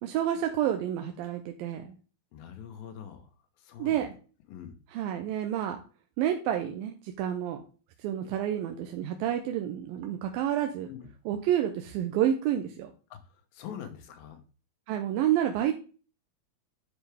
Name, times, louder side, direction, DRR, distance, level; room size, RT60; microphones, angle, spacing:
voice 1, 0.0-1.9 3.8-4.1 4.9-5.8 6.2-7.6 8.0-10.9 11.3-12.9 14.9-15.7, right 11 dB, 85° right, 5 dB, 2.5 m, -29 dB
voice 2, 2.3-4.1 4.5-4.8 10.9-11.1 13.1-14.4, left 8 dB, 85° left, 7 dB, 2.9 m, -44 dB
9.9 x 4.7 x 3.4 m, 0.36 s
omnidirectional pair, 4.1 m